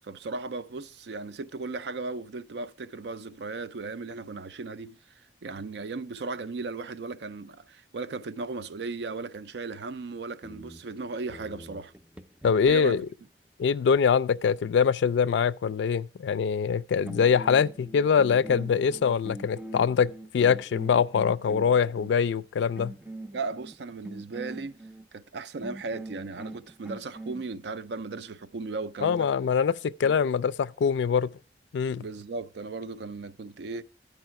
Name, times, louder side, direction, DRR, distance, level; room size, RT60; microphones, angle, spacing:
voice 1, 0.0-5.0 5.4-11.9 12.5-13.0 23.3-24.8 25.1-29.3 30.0-30.2 32.0-33.8, right 3 dB, 75° right, 0.5 m, -36 dB
sound 1, 10.4-13.1 16.6-16.8 17.1-22.2 22.8-25.0 25.6-27.4, right 1 dB, 5° right, 0.4 m, -43 dB
voice 2, 12.4-13.1 13.6-22.9 29.0-31.3 31.7-32.0, left 6 dB, 85° left, 0.3 m, -24 dB
12.0 x 4.7 x 4.6 m
head